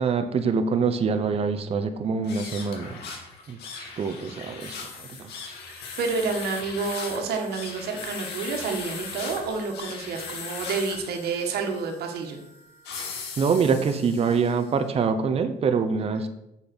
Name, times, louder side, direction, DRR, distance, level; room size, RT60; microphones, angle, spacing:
voice 1, 0.0-2.9 3.5-5.3 13.4-16.3, right 5 dB, 35° right, 8 dB, 0.8 m, -25 dB
sound 1, 2.2-14.7, left 5 dB, 80° left, 1.9 m, -39 dB
voice 2, 6.0-12.4, right 4 dB, 70° right, 3 dB, 1.6 m, -29 dB
6.8 x 5.8 x 6.2 m, 0.85 s
cardioid pair, 110°, 17 cm